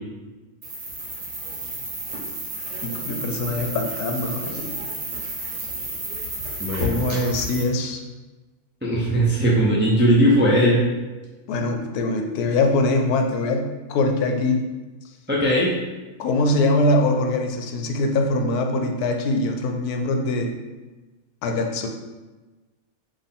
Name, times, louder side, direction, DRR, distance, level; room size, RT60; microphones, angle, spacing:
sound 1, 0.6-7.6, right 1 dB, 50° right, 1.3 m, -31 dB
voice 1, 2.8-4.9 6.8-8.1 11.5-14.6 16.2-20.5 21.4-21.9, left 2 dB, 80° left, 4 dB, 1.1 m, -23 dB
voice 2, 6.6-7.1 8.8-10.8 15.3-15.7, equal, 15° right, -5 dB, 0.4 m, -19 dB
4.4 x 2.9 x 3.5 m, 1.2 s
omnidirectional pair, 1.6 m